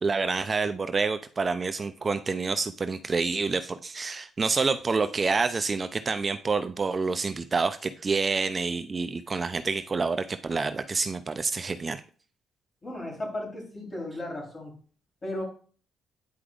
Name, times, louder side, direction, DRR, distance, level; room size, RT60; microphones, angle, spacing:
voice 1, 0.0-12.0, right 4 dB, 35° right, 10 dB, 0.5 m, -28 dB
voice 2, 12.8-14.7 15.2-15.4, left 1 dB, 35° left, 0 dB, 3.5 m, -35 dB
9.6 x 4.8 x 2.4 m, 0.41 s
cardioid pair, 90°, 0 cm